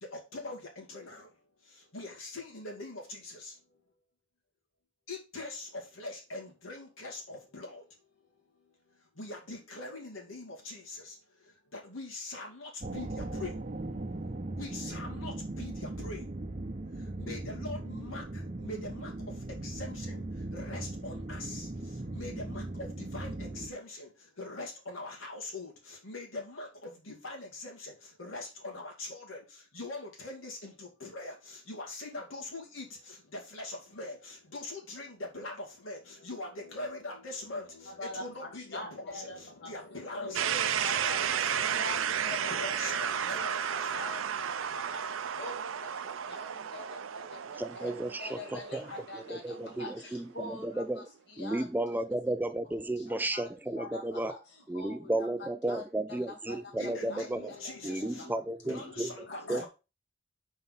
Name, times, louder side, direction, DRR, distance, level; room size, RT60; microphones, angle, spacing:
voice 1, 0.0-3.8 5.1-13.6 14.5-16.3 16.9-42.1 42.5-44.1 48.8-49.0 56.7-58.3 58.6-59.7, left 2 dB, 85° left, 2.5 m, -43 dB
sound 1, 12.8-23.7, right 2 dB, 35° right, 0.7 m, -39 dB
voice 2, 37.9-52.0 52.6-53.5 53.7-58.3 58.6-58.7 59.3-59.7, left 2 dB, 60° left, 2.4 m, -45 dB
sound 2, 40.3-50.2, right 8 dB, 85° right, 0.5 m, -33 dB
voice 3, 47.6-48.8 49.3-51.1 51.4-54.4 54.7-57.5 57.8-59.1 59.5-59.6, right 1 dB, 10° right, 0.3 m, -33 dB
5.6 x 4.5 x 5.6 m
head